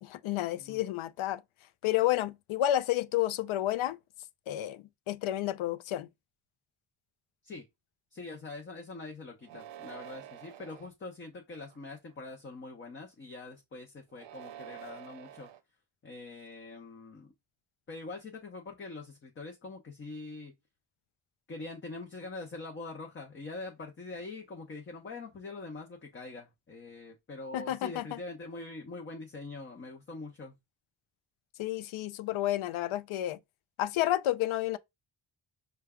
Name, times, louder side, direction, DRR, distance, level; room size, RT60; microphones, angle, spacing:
voice 1, 0.0-1.4 1.8-4.0 4.5-6.1 27.5-28.2 31.6-33.4 33.8-34.8, left 13 dB, 85° left, 0.5 m, -30 dB
voice 2, 8.1-15.5 16.0-17.3 17.9-20.5 21.5-30.5, left 3 dB, 25° left, 0.6 m, -44 dB
sound 1, 9.4-10.9 11.6-12.1 14.1-15.6, right 11 dB, 65° right, 0.6 m, -48 dB
5.6 x 2.3 x 3.5 m
wide cardioid pair, 175°, 47 cm